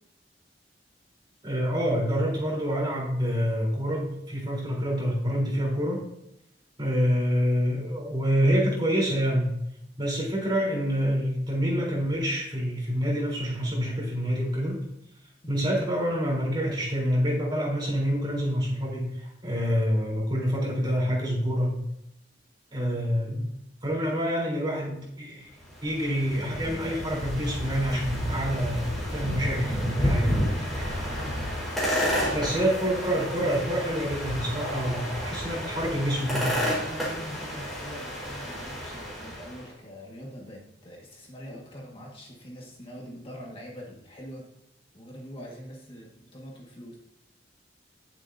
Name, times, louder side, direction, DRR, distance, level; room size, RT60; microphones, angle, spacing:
voice 1, 1.4-6.0 6.8-9.5 10.0-14.8 15.5-21.7 22.7-23.5 23.8-25.5 25.8-30.9 32.3-36.7, equal, 25° right, -5 dB, 3.9 m, -27 dB
sound 1, 25.6-39.6, equal, ahead, 4.7 m, -31 dB
voice 2, 31.0-31.4 31.9-32.6 36.8-44.4 44.9-47.0, equal, 30° left, -2 dB, 1.8 m, -43 dB
19.0 x 7.8 x 2.8 m, 0.82 s
head